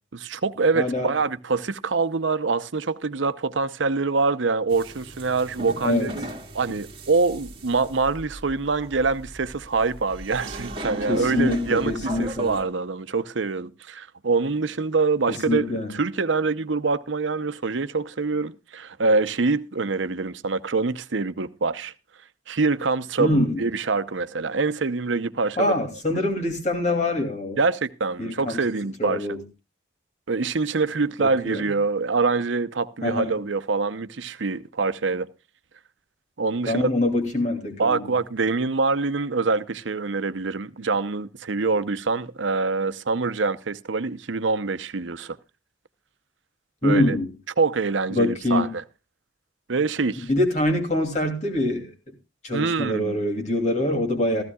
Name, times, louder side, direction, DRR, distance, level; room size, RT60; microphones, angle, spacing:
voice 1, 0.1-6.3 6.5-15.7 15.9-21.9 22.5-25.7 26.1-26.3 27.6-29.3 30.3-35.3 36.4-36.9 37.8-45.4 46.8-47.2 47.6-48.8 49.7-50.3 52.5-53.2, right 4 dB, 85° right, 0.8 m, -25 dB
voice 2, 0.7-1.1 5.8-6.1 11.1-12.6 15.5-15.9 23.2-23.6 25.6-27.6 28.2-28.6 29.0-29.4 31.2-31.6 33.0-33.3 36.7-38.1 46.8-47.3 48.1-48.7 50.3-51.9 52.4-54.4, left 1 dB, 40° left, 2.8 m, -24 dB
sound 1, 4.7-12.6, equal, 30° right, 1.9 m, -37 dB
15.0 x 15.0 x 2.3 m
head